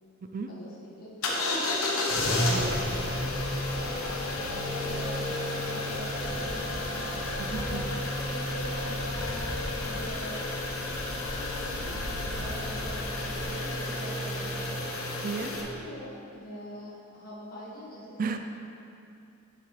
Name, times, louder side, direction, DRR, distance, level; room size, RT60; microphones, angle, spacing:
voice 1, 0.5-1.1 1.4-4.6 4.8-5.2 5.5-7.0 7.5-9.6 9.8-10.5 11.2-11.9 12.3-18.2, equal, 45° left, -7 dB, 1.8 m, -44 dB
sound 1, 1.2-15.6, left 2 dB, 75° left, 1.1 m, -31 dB
voice 2, 2.5-3.2 7.4-7.9 12.4-12.5 15.2-15.5 18.2-18.4, right 4 dB, 40° right, 6 dB, 0.4 m, -34 dB
sound 2, 2.6-5.4 5.7-13.5, equal, 10° right, 1.5 m, -41 dB
8.8 x 6.9 x 3.2 m, 2.6 s
head